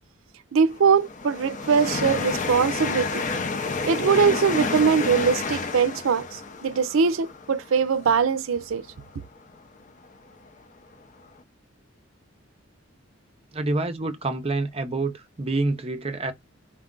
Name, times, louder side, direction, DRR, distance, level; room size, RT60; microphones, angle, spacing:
voice 1, 0.5-3.2 3.8-8.9, right 6 dB, 80° right, 0.5 m, -22 dB
sound 1, 0.7-9.4 10.0-10.1 10.9-11.0, left 4 dB, 40° left, 0.5 m, -30 dB
voice 2, 13.5-16.3, right 2 dB, 30° right, 0.5 m, -27 dB
4.5 x 2.4 x 3.7 m
head